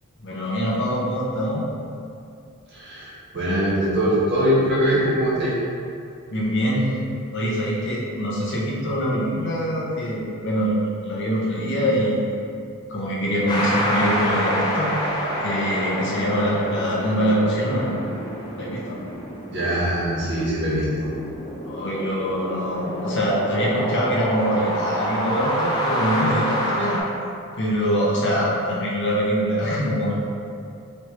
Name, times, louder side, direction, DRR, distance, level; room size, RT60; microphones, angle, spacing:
voice 1, 0.2-1.6 6.3-6.9 7.3-12.4 12.9-14.9 15.4-17.9 18.6-19.0 21.6-27.0 27.5-30.2, equal, 55° left, -5 dB, 0.8 m, -24 dB
voice 2, 2.7-5.5 19.5-21.1, equal, 50° right, -8 dB, 1.3 m, -22 dB
sound 1, 13.5-27.0, equal, 20° left, 0.6 m, -28 dB
4.2 x 3.1 x 3.2 m, 2.4 s
head